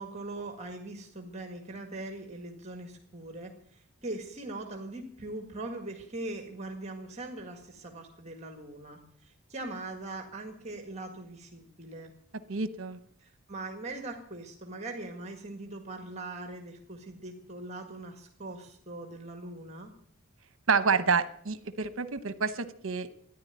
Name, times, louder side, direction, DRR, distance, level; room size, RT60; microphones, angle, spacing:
voice 1, 0.0-12.1 13.2-19.9, right 2 dB, 30° right, 4 dB, 1.8 m, -41 dB
voice 2, 12.5-13.0 20.7-23.1, right 5 dB, 70° right, 12 dB, 0.9 m, -28 dB
13.5 x 10.5 x 9.2 m, 0.63 s
head